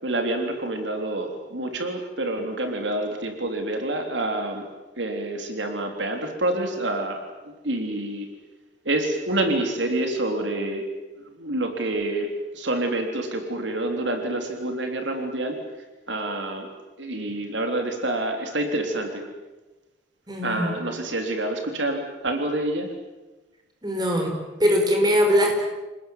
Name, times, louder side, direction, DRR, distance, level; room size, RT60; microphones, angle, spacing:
voice 1, 0.0-4.7 5.0-7.2 7.5-8.3 8.9-10.9 11.4-15.6 16.1-16.7 17.0-19.2 20.4-22.9, right 1 dB, 75° right, 4 dB, 3.6 m, -27 dB
voice 2, 20.3-20.7 23.8-25.6, equal, 20° right, 2 dB, 5.1 m, -21 dB
28.0 x 20.0 x 9.3 m, 1.2 s
head